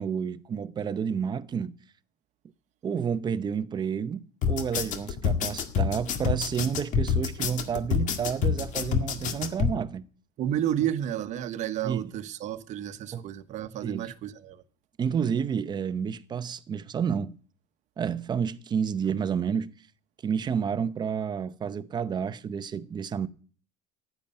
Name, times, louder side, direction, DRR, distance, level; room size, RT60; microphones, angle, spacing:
voice 1, 0.0-1.8 2.8-10.1 11.8-12.1 13.1-13.3 13.8-14.1 15.0-17.4 18.0-19.7 20.2-23.3, right 7 dB, 25° right, 0.8 m, -30 dB
sound 1, 4.4-9.7, left 7 dB, 50° left, 2.0 m, -27 dB
voice 2, 10.4-14.6, right 11 dB, 45° right, 1.2 m, -31 dB
14.0 x 10.5 x 5.5 m
cardioid pair, 135°, 17 cm